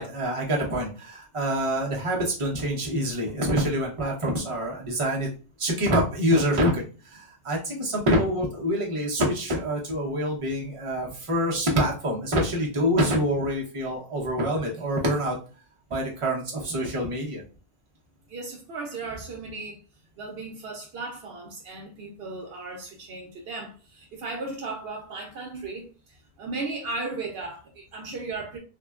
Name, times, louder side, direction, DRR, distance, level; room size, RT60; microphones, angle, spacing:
voice 1, 0.0-5.3 5.6-15.4 15.9-17.4, equal, 35° right, 0.8 m, -26 dB
voice 2, 18.3-19.8 20.2-25.9 26.4-28.6, right 3 dB, 70° right, 0.8 m, -36 dB
3.5 x 2.1 x 2.3 m
omnidirectional pair, 1.1 m